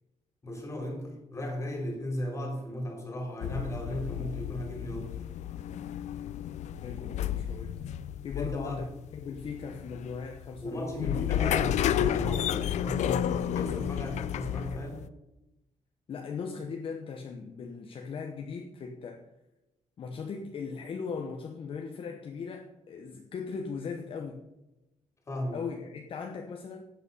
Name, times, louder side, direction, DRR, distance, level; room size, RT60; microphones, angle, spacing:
voice 1, 0.4-5.1 8.3-8.8 10.6-15.1 25.3-25.6, equal, 25° left, 2 dB, 3.3 m, -36 dB
sound 1, 3.4-15.1, left 10 dB, 75° left, 0.5 m, -32 dB
voice 2, 6.8-7.8 8.2-8.8 9.1-10.9 16.1-19.3 20.0-24.4 25.5-26.8, left 5 dB, 45° left, 3 dB, 1.0 m, -38 dB
12.5 x 8.3 x 5.5 m, 0.95 s
wide cardioid pair, 165°, 12 cm